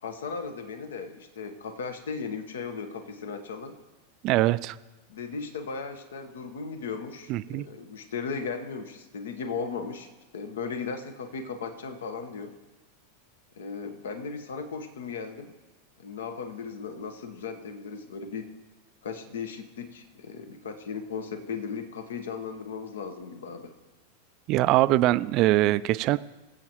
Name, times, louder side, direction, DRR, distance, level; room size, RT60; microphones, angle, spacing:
voice 1, 0.0-3.8 5.1-10.1 10.3-12.5 13.6-15.5 16.0-18.5 19.0-23.7, left 5 dB, 65° left, 8 dB, 1.0 m, -36 dB
voice 2, 4.2-4.8 7.3-7.7 24.5-26.2, right 16 dB, 45° right, 16 dB, 0.3 m, -22 dB
22.0 x 7.9 x 3.0 m, 1.1 s
figure-of-eight pair, 90°, 0 cm